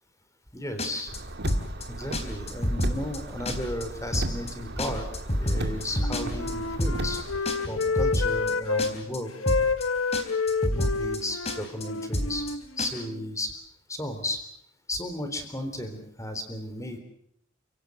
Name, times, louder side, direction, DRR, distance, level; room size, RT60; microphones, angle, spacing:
voice 1, 0.5-1.1 1.9-7.2 7.6-9.3 10.7-12.4 12.8-13.5 13.9-14.4 14.9-17.0, left 1 dB, 15° left, 8 dB, 3.7 m, -34 dB
sound 1, 0.8-1.2 1.5-1.8 2.1-2.2 2.5-3.2 3.4-3.8 4.1-4.5 4.8-6.5 6.8-7.2 7.4-8.5 8.8-9.2 9.5-9.8 10.1-10.2 10.5-11.2 11.4-11.8 12.1-12.5 12.8-12.9, equal, 30° left, 3.8 m, -27 dB
Car, 1.1-7.4, right 1 dB, 55° right, 2.3 m, -35 dB
Wind instrument woodwind instrument, 6.0-8.9 9.4-13.2, left 4 dB, 75° left, 1.2 m, -29 dB
29.5 x 17.0 x 7.9 m, 0.74 s
head